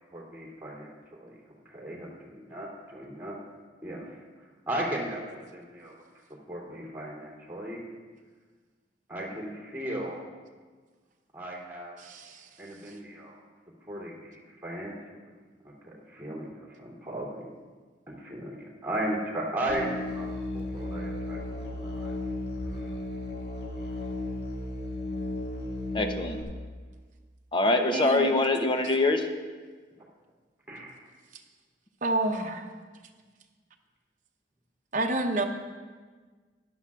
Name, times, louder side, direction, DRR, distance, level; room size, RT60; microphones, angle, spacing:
voice 1, 0.1-0.9 1.2-1.3 1.6-3.4 3.8-4.1 4.7-5.9 6.5-7.8 9.1-10.2 11.3-12.0 12.6-13.4 13.9-15.0 15.6-17.5 18.1-22.1 22.7-22.9 30.7-30.9, right 1 dB, 15° right, -4 dB, 2.8 m, -36 dB
voice 2, 12.0-12.5 27.9-28.3 32.0-32.6 34.9-35.4, right 2 dB, 50° right, 4 dB, 0.9 m, -29 dB
Musical instrument, 19.7-26.4, left 1 dB, 65° left, 1.9 m, -34 dB
voice 3, 25.9-26.4 27.5-29.2, left 2 dB, 30° left, 5 dB, 0.7 m, -24 dB
15.5 x 11.0 x 2.4 m, 1.4 s
head